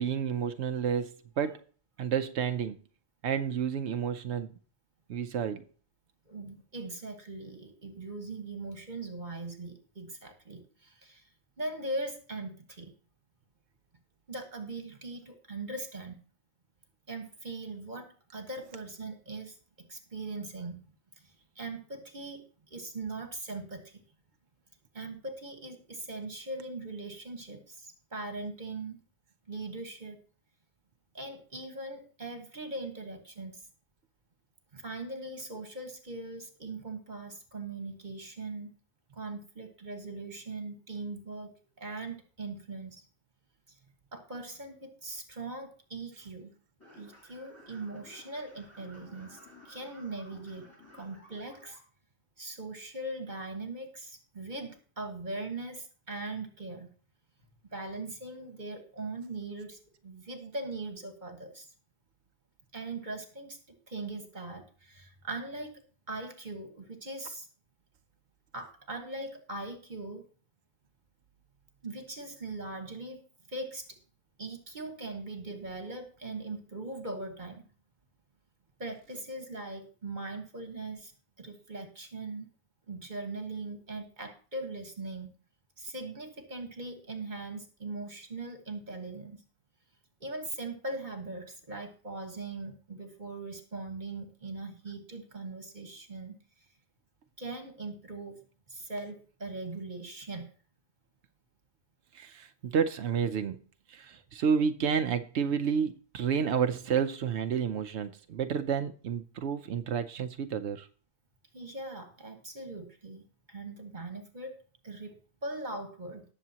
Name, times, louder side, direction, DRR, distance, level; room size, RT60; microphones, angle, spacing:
voice 1, 0.0-1.6 2.0-2.8 3.2-4.5 5.1-5.6 102.1-103.6 103.9-110.9, right 7 dB, 90° right, 1.0 m, -30 dB
voice 2, 6.3-11.2 11.6-12.9 14.3-16.2 17.1-19.6 19.9-20.8 21.5-22.4 22.7-23.9 24.9-29.0 29.5-30.2 31.1-33.6 34.7-38.7 39.1-41.5 41.8-43.0 44.1-46.5 47.0-49.4 49.7-50.7 50.9-51.8 52.4-56.9 57.7-61.7 62.7-63.6 63.9-65.7 66.1-67.5 68.5-70.2 71.8-73.2 73.5-74.0 74.4-77.6 78.8-81.1 81.4-82.5 82.9-85.3 85.8-89.4 90.2-96.3 97.4-98.4 98.7-100.5 111.5-113.2 113.5-114.6 114.8-115.2 115.4-116.2, right 2 dB, 45° right, 1.6 m, -40 dB
sound 1, 46.8-51.8, left 1 dB, 15° left, 6.0 m, -55 dB
19.5 x 7.1 x 2.9 m
omnidirectional pair, 1.1 m